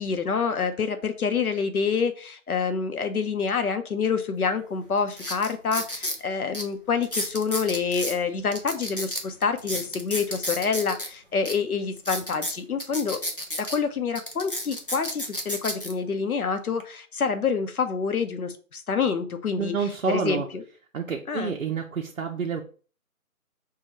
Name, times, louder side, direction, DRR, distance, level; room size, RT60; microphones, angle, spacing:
voice 1, 0.0-13.2 13.6-19.7 20.1-20.6 21.3-21.5, left 5 dB, 85° left, 8 dB, 0.9 m, -27 dB
sound 1, 4.4-4.5 5.1-6.2 6.5-6.6 7.0-8.2 8.5-11.1 11.5-11.6 12.0-13.8 14.2-15.9 16.6-16.8, equal, 40° left, 0.5 m, -32 dB
voice 2, 19.6-20.5 20.9-22.6, right 6 dB, 65° right, 1 dB, 0.6 m, -28 dB
5.6 x 2.4 x 3.0 m, 0.39 s
hypercardioid pair, 180°, 43 cm